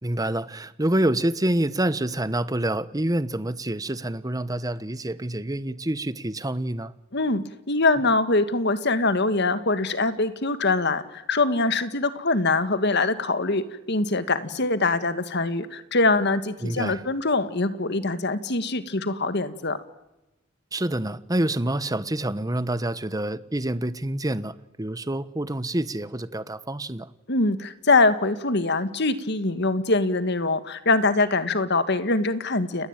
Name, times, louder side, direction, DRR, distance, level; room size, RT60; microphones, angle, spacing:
voice 1, 0.0-6.9 16.6-17.0 20.7-27.1, right 1 dB, 20° right, 1.1 m, -27 dB
voice 2, 7.1-19.8 27.3-32.9, left 3 dB, 55° left, 1.9 m, -23 dB
29.5 x 19.5 x 9.1 m
head